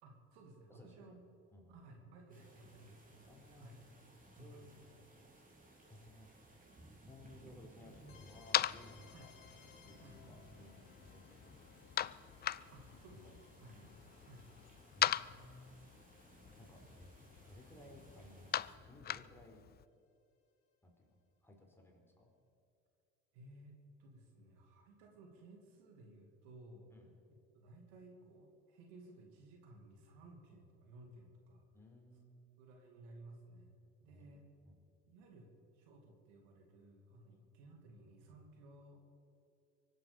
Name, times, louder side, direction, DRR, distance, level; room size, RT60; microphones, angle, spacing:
voice 1, 0.0-1.3 1.7-3.7 4.4-4.8 9.1-9.3 10.0-10.2 12.7-13.3 13.6-13.8 14.3-14.5 23.3-23.7 24.0-26.9 27.5-31.6 32.6-34.4 35.1-39.1, right 2 dB, 75° right, 2 dB, 2.6 m, -58 dB
voice 2, 0.7-1.2 1.5-1.8 3.3-3.8 4.4-4.9 5.9-6.3 7.0-9.3 9.8-12.1 12.9-13.4 13.7-13.9 15.0-15.7 16.6-17.1 17.4-19.7 20.8-22.3 26.9-27.1 31.7-32.5 34.1-34.4 34.6-34.8 37.3-37.4, left 1 dB, 5° left, 0 dB, 4.1 m, -59 dB
sound 1, 2.3-18.8, right 2 dB, 25° right, 4.2 m, -62 dB
sound 2, 7.9-19.8, left 11 dB, 30° left, 0.4 m, -42 dB
sound 3, 8.1-17.8, left 5 dB, 75° left, 2.4 m, -64 dB
23.5 x 8.1 x 7.1 m, 2.5 s
hypercardioid pair, 60°, 33 cm